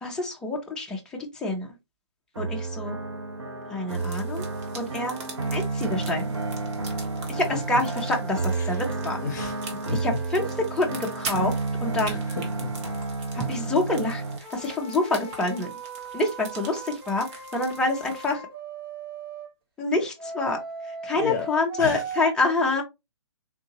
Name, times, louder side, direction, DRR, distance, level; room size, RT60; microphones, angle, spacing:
voice 1, 0.0-1.7 2.4-3.0 3.7-4.5 4.7-5.2 5.5-6.3 7.3-9.2 10.0-10.4 10.7-11.5 11.8-12.2 13.3-14.2 14.5-15.7 16.1-18.4 19.8-20.6 20.9-22.8, left 2 dB, 5° left, 0.6 m, -27 dB
sound 1, 2.3-14.4, right 3 dB, 75° right, 1.0 m, -31 dB
sound 2, 3.9-18.3, right 4 dB, 25° right, 0.8 m, -43 dB
voice 2, 9.1-10.2 12.0-12.7 21.1-21.5 21.8-22.0, left 5 dB, 40° left, 0.8 m, -34 dB
sound 3, 14.4-19.5 20.2-22.3, right 4 dB, 55° right, 1.5 m, -38 dB
3.7 x 2.7 x 2.8 m
figure-of-eight pair, 135°, 14 cm